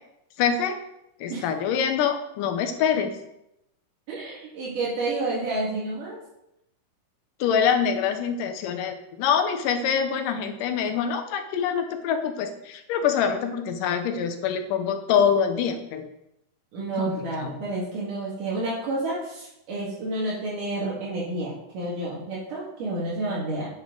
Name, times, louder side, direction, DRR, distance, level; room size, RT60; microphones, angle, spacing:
voice 1, 0.4-0.8 1.2-3.2 7.4-16.1 17.0-17.1 17.4-17.5, left 7 dB, 75° left, 7 dB, 2.4 m, -25 dB
voice 2, 4.1-6.2 16.7-23.7, right 2 dB, 65° right, -6 dB, 3.4 m, -30 dB
10.0 x 8.1 x 3.9 m, 0.83 s
omnidirectional pair, 4.0 m